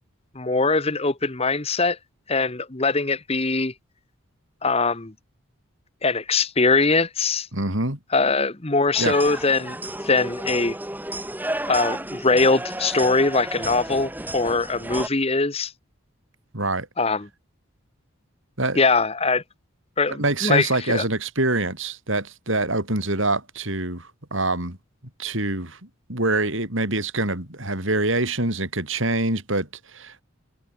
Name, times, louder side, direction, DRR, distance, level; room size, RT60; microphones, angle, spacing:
voice 1, 0.3-2.0 2.3-3.7 4.6-5.1 6.0-7.5 8.1-10.8 11.7-15.7 17.0-17.3 18.7-19.4 20.0-21.0, left 3 dB, 25° left, 1.1 m, -22 dB
voice 2, 7.5-8.0 9.0-9.1 16.5-16.9 18.6-18.8 20.2-24.8 25.2-25.8 26.1-30.2, right 2 dB, 60° right, 5.6 m, -25 dB
sound 1, 8.9-15.1, right 1 dB, 10° right, 6.0 m, -32 dB
head